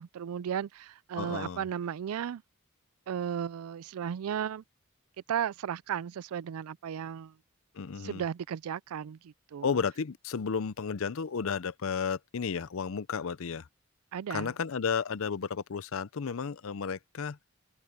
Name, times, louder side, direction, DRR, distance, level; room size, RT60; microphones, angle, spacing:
voice 1, 0.0-2.4 3.1-4.6 5.3-7.3 8.0-9.8 14.1-14.5, right 8 dB, 85° right, 0.4 m, -35 dB
voice 2, 1.2-1.6 7.7-8.2 9.6-13.7 14.3-17.4, left 6 dB, 70° left, 0.5 m, -33 dB
open air
head